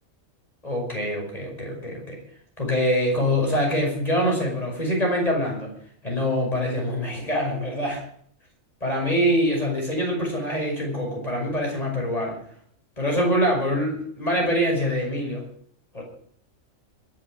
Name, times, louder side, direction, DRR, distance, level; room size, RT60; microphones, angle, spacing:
voice 1, 0.6-2.2 2.6-5.7 6.0-8.0 8.8-12.4 13.0-15.4 15.9-16.0, equal, 30° left, -1 dB, 5.8 m, -24 dB
22.0 x 7.9 x 6.4 m, 0.63 s
omnidirectional pair, 1.4 m